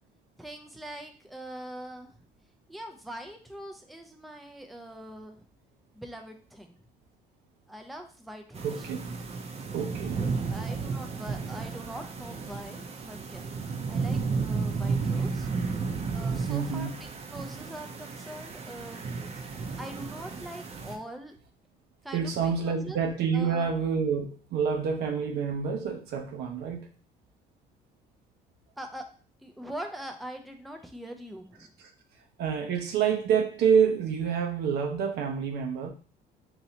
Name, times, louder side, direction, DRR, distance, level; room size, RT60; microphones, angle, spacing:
voice 1, 0.4-2.2 2.7-5.5 5.9-6.8 7.7-8.9 10.5-13.4 13.9-15.5 16.1-16.9 17.3-21.4 22.0-23.0 23.3-23.7 28.8-29.1 29.4-31.7, right 1 dB, ahead, 0.5 m, -43 dB
sound 1, 8.5-21.0, right 4 dB, 40° right, 0.7 m, -33 dB
voice 2, 8.6-9.0 9.7-10.2 16.4-16.9 22.1-26.9 31.8-31.9 32.4-35.9, right 6 dB, 80° right, 0.8 m, -27 dB
4.1 x 3.1 x 2.8 m
cardioid pair, 110°, 17 cm